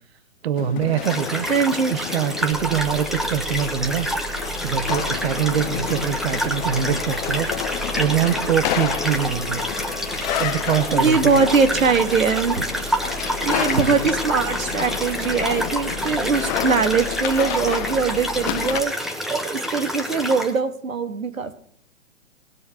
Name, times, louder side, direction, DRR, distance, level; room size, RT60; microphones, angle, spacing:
voice 1, 0.4-1.4 1.8-4.1 4.6-9.6 10.4-11.5 13.6-14.0, right 9 dB, 50° right, 13 dB, 0.9 m, -24 dB
sound 1, 0.5-18.8, left 12 dB, 35° left, 0.9 m, -31 dB
sound 2, 1.0-20.6, equal, ahead, 1.1 m, -28 dB
voice 2, 1.5-1.9 10.9-13.0 13.4-18.9 19.3-21.5, right 5 dB, 85° right, 9 dB, 1.6 m, -21 dB
Church bell, 2.5-18.8, right 2 dB, 25° right, 2.5 m, -37 dB
20.0 x 6.8 x 7.0 m, 0.63 s
hypercardioid pair, 130°, 39 cm